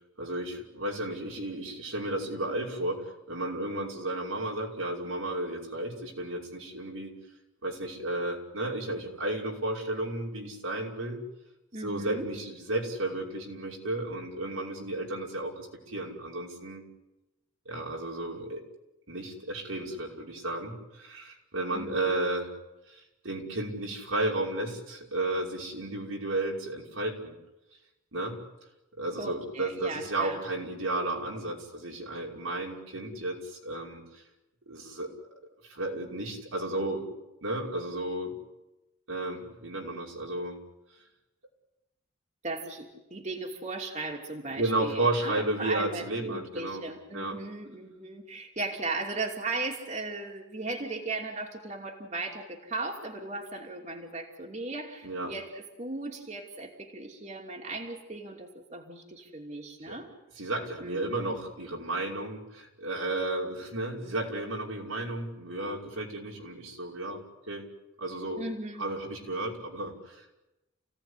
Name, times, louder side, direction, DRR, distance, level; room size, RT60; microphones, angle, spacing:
voice 1, 0.2-7.1 7.6-11.2 11.8-16.8 17.7-18.6 19.1-22.5 22.9-27.4 28.1-28.4 29.0-34.2 34.7-35.1 35.6-37.1 37.4-38.3 39.1-40.6 44.6-46.9 47.1-47.4 55.0-55.3 59.9-60.0 60.4-67.7 68.0-68.4 68.8-70.4, right 2 dB, 90° right, -2 dB, 5.7 m, -33 dB
voice 2, 11.7-12.3 21.7-22.2 29.2-30.4 42.4-60.1 60.8-61.4 68.4-68.9, right 2 dB, 35° right, 0 dB, 3.0 m, -37 dB
29.0 x 17.5 x 10.0 m, 0.99 s
head